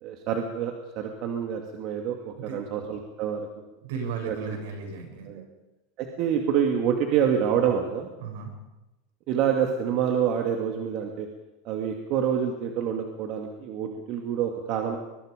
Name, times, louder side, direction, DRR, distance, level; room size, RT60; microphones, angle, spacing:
voice 1, 0.0-3.5 4.2-4.6 5.3-5.4 6.0-8.1 9.3-11.3 11.6-15.0, right 8 dB, 45° right, 3 dB, 2.3 m, -27 dB
voice 2, 3.8-5.4 8.2-8.5, right 5 dB, 75° right, 3 dB, 7.6 m, -35 dB
23.5 x 22.5 x 5.2 m, 1.0 s
supercardioid pair, 150°, 0 cm